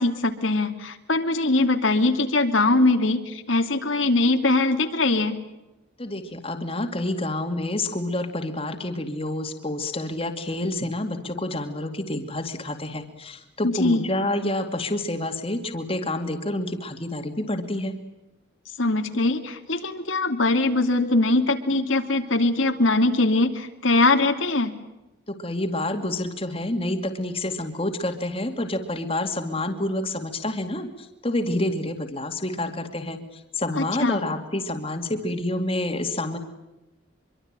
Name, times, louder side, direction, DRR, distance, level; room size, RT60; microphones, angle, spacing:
voice 1, 0.0-5.4 13.6-14.1 18.8-24.7 33.8-34.2, left 2 dB, 75° left, 5 dB, 2.7 m, -22 dB
voice 2, 6.0-17.9 25.3-36.4, left 1 dB, 30° left, 5 dB, 2.4 m, -28 dB
25.5 x 24.0 x 8.9 m, 0.93 s
head